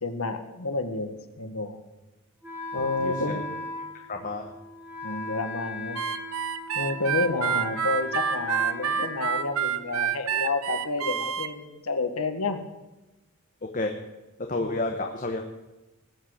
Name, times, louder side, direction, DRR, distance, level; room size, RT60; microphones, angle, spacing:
voice 1, 0.0-1.8 2.7-3.4 5.0-6.0 6.7-12.6 14.6-14.7, left 3 dB, 90° left, 7 dB, 1.6 m, -30 dB
Wind instrument woodwind instrument, 2.4-10.2, left 1 dB, 10° right, 2.9 m, -38 dB
voice 2, 2.8-3.4 4.1-4.5 7.2-7.3 13.6-13.9 14.5-15.5, left 2 dB, 35° left, 3 dB, 1.0 m, -31 dB
Harmonica, 5.9-11.5, right 8 dB, 80° right, 0.8 m, -28 dB
19.0 x 8.7 x 6.5 m, 1.1 s
head